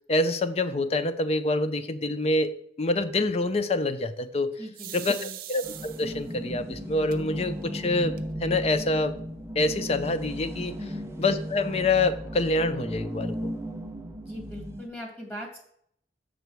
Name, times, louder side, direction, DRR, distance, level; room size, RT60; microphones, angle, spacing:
voice 1, 0.1-2.5 2.8-4.6 4.9-8.1 8.4-9.1 9.6-10.8 11.2-13.5, left 2 dB, 35° left, 11 dB, 0.5 m, -26 dB
voice 2, 4.6-5.4 10.8-11.0 14.2-15.6, equal, 10° left, 0 dB, 1.8 m, -40 dB
sound 1, 4.7-6.3 7.1-7.2 7.6-7.7 8.0-8.6, right 13 dB, 55° right, 0.5 m, -41 dB
sound 2, 5.6-14.9, equal, 15° right, 0.7 m, -35 dB
6.7 x 6.2 x 4.6 m, 0.68 s
head